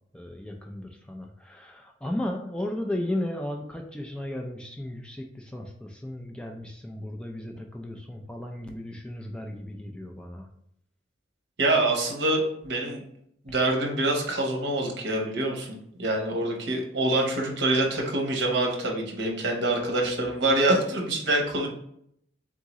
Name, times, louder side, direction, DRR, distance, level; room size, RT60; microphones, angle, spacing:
voice 1, 0.1-10.5, left 1 dB, 5° left, 2 dB, 0.3 m, -35 dB
voice 2, 11.6-13.0 13.4-21.7, right 2 dB, 65° right, 0 dB, 1.0 m, -25 dB
3.6 x 3.6 x 3.0 m, 0.71 s
head